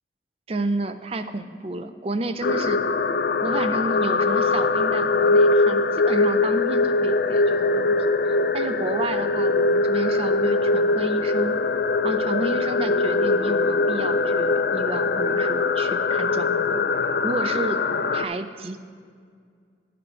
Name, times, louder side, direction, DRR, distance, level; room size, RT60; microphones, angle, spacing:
voice 1, 0.5-3.0 3.4-8.0 8.2-11.6 12.0-17.8 18.1-18.8, right 2 dB, 35° right, 10 dB, 0.4 m, -31 dB
sound 1, 2.4-18.2, left 3 dB, 60° left, 0.4 m, -22 dB
11.5 x 7.6 x 4.4 m, 2.1 s
head